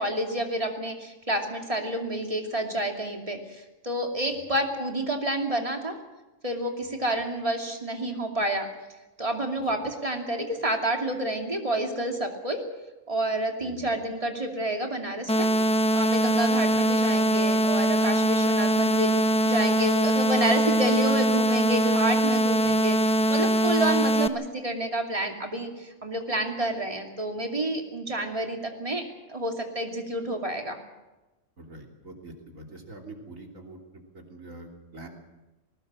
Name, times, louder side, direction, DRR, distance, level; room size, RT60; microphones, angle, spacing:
voice 1, 0.0-6.0 6.4-8.7 9.2-12.6 13.1-15.5 15.9-29.0 29.3-30.8, right 1 dB, 25° right, 2 dB, 2.7 m, -29 dB
voice 2, 9.6-9.9 13.6-13.9 22.6-22.8 31.6-33.8 34.1-35.1, right 2 dB, 85° right, 1 dB, 3.7 m, -45 dB
sound 1, 15.3-24.3, right 1 dB, 5° left, 0.6 m, -22 dB
20.5 x 18.5 x 7.5 m, 1.1 s
omnidirectional pair, 1.3 m